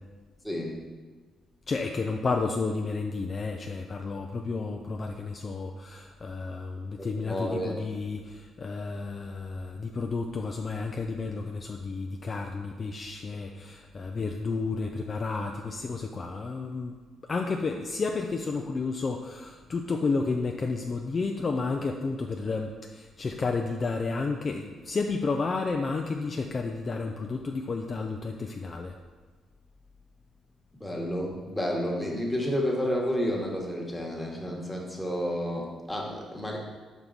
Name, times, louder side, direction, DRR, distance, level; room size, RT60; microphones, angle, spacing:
voice 1, 1.7-16.9 17.3-28.9, left 4 dB, 40° left, 3 dB, 0.4 m, -31 dB
voice 2, 7.0-7.8 30.8-36.6, equal, 10° left, -2 dB, 1.3 m, -30 dB
5.6 x 4.6 x 3.9 m, 1.4 s
cardioid pair, 90°, 0 cm